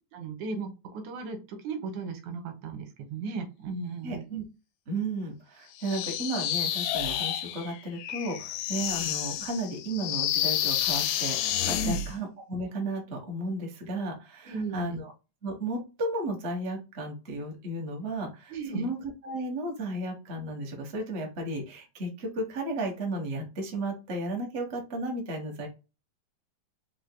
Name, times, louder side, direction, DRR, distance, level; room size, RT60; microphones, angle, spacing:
voice 1, 0.1-4.3 11.7-12.0 14.4-15.0 18.5-18.9, right 4 dB, 80° right, 6 dB, 2.4 m, -36 dB
voice 2, 4.0-4.4 4.9-15.1 15.4-25.7, right 2 dB, 50° right, 1 dB, 0.7 m, -34 dB
sound 1, 5.8-12.1, left 10 dB, 80° left, 1.6 m, -30 dB
5.0 x 3.6 x 2.2 m, 0.29 s
omnidirectional pair, 3.4 m